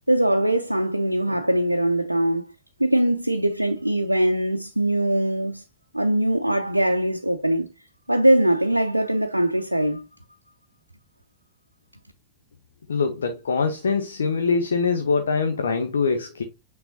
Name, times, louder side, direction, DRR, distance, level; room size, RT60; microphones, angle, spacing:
voice 1, 0.1-2.5 2.8-5.6 5.9-7.7 8.1-10.0, right 1 dB, 85° right, 0.5 m, -21 dB
voice 2, 12.9-16.4, left 5 dB, 70° left, 0.9 m, -23 dB
8.8 x 3.9 x 2.7 m
figure-of-eight pair, 90°, 0 cm